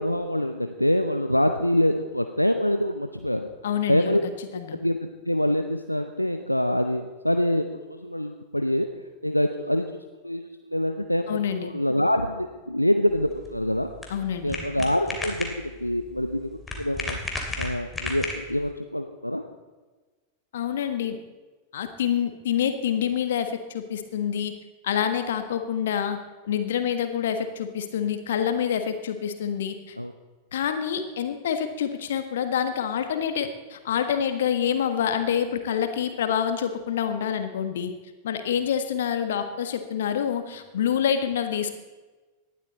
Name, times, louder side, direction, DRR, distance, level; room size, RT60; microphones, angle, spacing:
voice 1, 0.0-3.5 3.9-4.2 4.8-8.9 9.2-9.9 10.2-13.9 14.4-17.2 17.6-19.4 30.0-30.1, left 1 dB, 90° left, 6 dB, 0.7 m, -25 dB
voice 2, 3.6-4.2 4.5-4.8 11.3-11.7 14.1-14.6 20.5-21.2 21.7-24.6 24.8-26.2 26.4-30.0 30.5-37.9 38.2-41.7, left 8 dB, 60° left, 8 dB, 1.4 m, -27 dB
sound 1, 13.1-18.7, left 2 dB, 10° left, 2.7 m, -35 dB
18.0 x 11.5 x 4.1 m, 1.3 s
figure-of-eight pair, 90°, 0 cm